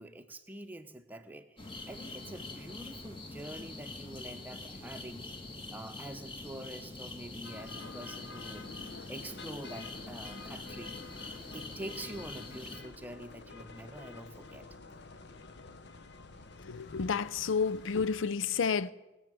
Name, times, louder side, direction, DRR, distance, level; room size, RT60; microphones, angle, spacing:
voice 1, 0.0-5.2 5.7-8.7 9.1-11.0 11.5-14.6, right 1 dB, 10° right, 0.9 m, -46 dB
sound 1, 1.6-12.8, left 2 dB, 25° left, 1.7 m, -45 dB
sound 2, 7.4-18.2, left 3 dB, 60° left, 1.0 m, -49 dB
voice 2, 16.6-18.9, left 5 dB, 75° left, 0.5 m, -30 dB
19.5 x 7.3 x 9.1 m
head